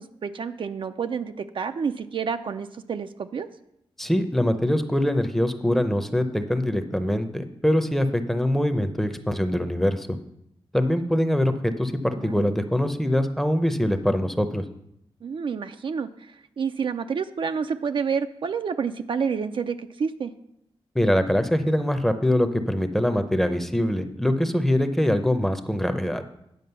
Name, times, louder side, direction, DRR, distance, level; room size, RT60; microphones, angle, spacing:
voice 1, 0.0-3.5 12.2-12.6 15.2-20.3, right 6 dB, 60° right, 8 dB, 0.4 m, -29 dB
voice 2, 4.0-10.1 10.7-14.6 20.9-26.2, left 1 dB, 5° left, 8 dB, 0.6 m, -23 dB
9.5 x 5.0 x 6.8 m, 0.80 s
wide cardioid pair, 110°, 10 cm